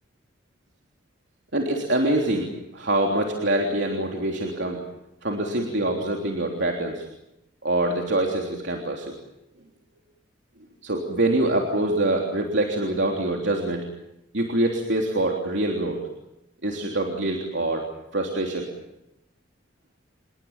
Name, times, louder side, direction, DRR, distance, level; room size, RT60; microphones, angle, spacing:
voice 1, 1.5-4.8 5.2-7.1 7.6-9.1 10.8-13.9 14.3-16.0 16.6-17.8 18.1-18.7, right 1 dB, 75° right, 1 dB, 3.4 m, -25 dB
28.5 x 21.5 x 7.3 m, 0.87 s
head